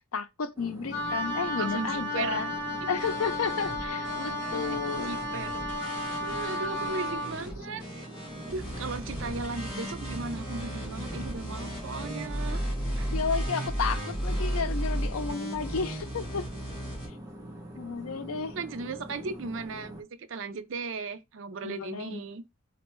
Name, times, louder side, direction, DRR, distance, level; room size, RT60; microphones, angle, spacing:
voice 1, 0.1-2.5 2.9-5.2 6.5-6.9 13.1-16.5 17.8-18.6 21.6-22.2, left 5 dB, 85° left, 0.5 m, -32 dB
sound 1, 0.6-20.0, equal, 15° right, 0.8 m, -44 dB
Wind instrument woodwind instrument, 0.9-7.4, equal, 45° left, 1.0 m, -33 dB
voice 2, 1.6-2.4 2.8-2.9 4.3-5.6 6.2-8.1 8.5-12.6 13.0-13.1 18.5-22.4, right 4 dB, 65° right, 0.5 m, -37 dB
sound 2, 3.0-17.1, equal, 20° left, 2.5 m, -35 dB
4.3 x 2.9 x 3.0 m
head